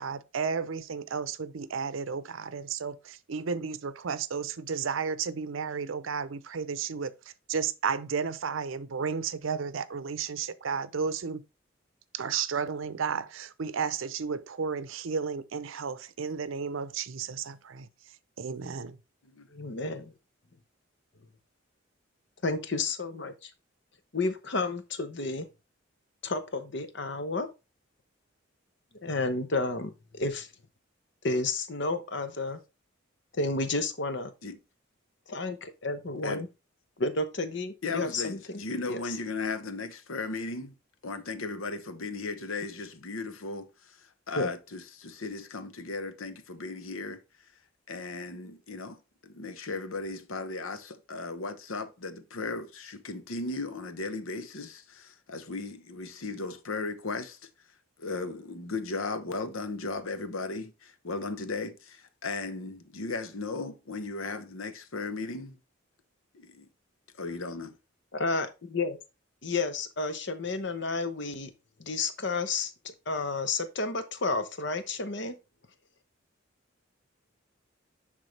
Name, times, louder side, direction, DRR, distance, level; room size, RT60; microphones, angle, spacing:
voice 1, 0.0-7.1 7.5-11.4 12.1-17.9 18.4-19.0, right 6 dB, 75° right, 0.6 m, -33 dB
voice 2, 19.5-20.1 22.4-23.5 24.1-25.4 26.2-27.5 29.0-30.5 31.2-32.6 33.4-34.3 35.3-36.5 37.0-38.6 38.9-39.0 44.4-44.5 68.1-69.0 69.4-71.5 71.8-72.7 73.1-75.3, left 3 dB, 60° left, 0.9 m, -31 dB
voice 3, 37.8-40.7 41.0-47.2 47.9-49.0 49.2-57.5 58.0-65.6 66.3-66.7 67.2-67.8, left 3 dB, 90° left, 0.9 m, -36 dB
10.5 x 3.7 x 3.2 m
head